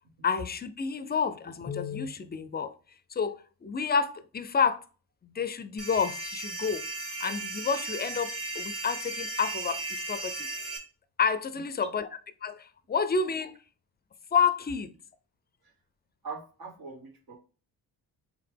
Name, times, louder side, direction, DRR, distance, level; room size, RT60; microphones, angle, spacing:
voice 1, 0.2-2.7 3.1-4.8 5.2-6.8 7.2-10.5 11.2-12.1 12.4-13.6 14.3-14.9, left 6 dB, 25° left, 0.4 m, -29 dB
sound 1, 5.8-10.8, right 2 dB, 35° right, 1.2 m, -36 dB
voice 2, 16.2-17.4, right 4 dB, 60° right, 1.1 m, -42 dB
3.6 x 2.9 x 3.3 m
supercardioid pair, 50°, 40 cm